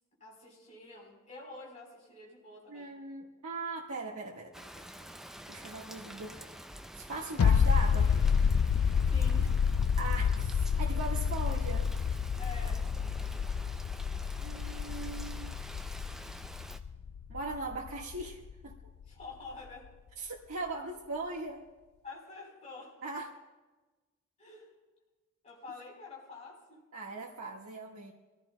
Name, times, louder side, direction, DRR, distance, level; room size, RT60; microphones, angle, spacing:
voice 1, 0.2-3.0 9.0-9.6 12.4-12.9 19.0-19.9 22.0-23.0 24.4-24.7 25.4-26.9, left 3 dB, 30° left, -3 dB, 3.9 m, -48 dB
voice 2, 2.7-4.7 5.5-6.5 6.9-8.1 10.0-11.9 14.4-15.5 17.3-18.7 20.2-21.6 23.0-23.3 26.9-28.1, right 3 dB, 85° right, -2 dB, 1.5 m, -39 dB
Rain, 4.5-16.8, equal, ahead, 0.3 m, -48 dB
sound 1, 7.4-18.7 19.0-19.1, left 6 dB, 80° left, 0.3 m, -29 dB
24.5 x 16.0 x 2.2 m, 1.2 s
head